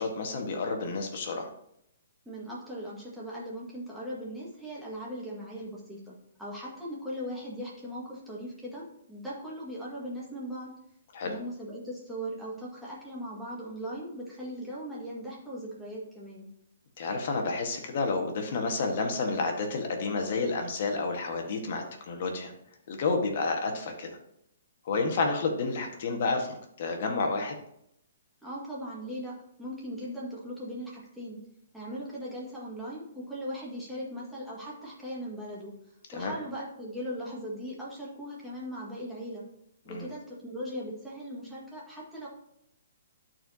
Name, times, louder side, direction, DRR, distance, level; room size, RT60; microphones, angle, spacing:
voice 1, 0.0-1.5 11.1-11.3 17.0-22.5 22.9-24.1 24.8-27.5 36.1-36.3 39.9-40.1, left 3 dB, 50° left, 3 dB, 1.5 m, -30 dB
voice 2, 2.3-10.7 11.2-16.5 28.4-31.4 31.7-35.7 36.1-39.4 39.8-42.3, equal, ahead, -7 dB, 1.9 m, -39 dB
12.0 x 4.5 x 2.8 m, 0.76 s
hypercardioid pair, 160°, 0 cm